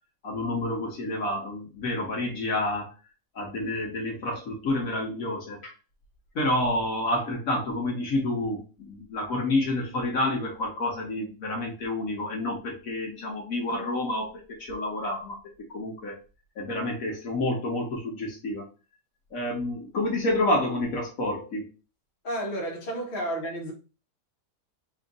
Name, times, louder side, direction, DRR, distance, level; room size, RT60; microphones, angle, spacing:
voice 1, 0.2-2.9 3.3-5.7 6.3-15.4 15.7-16.2 16.6-18.6 19.3-21.7, left 1 dB, 60° left, 1.2 m, -29 dB
voice 2, 22.2-23.7, right 1 dB, 40° left, 1.0 m, -31 dB
3.5 x 2.4 x 3.8 m
omnidirectional pair, 1.8 m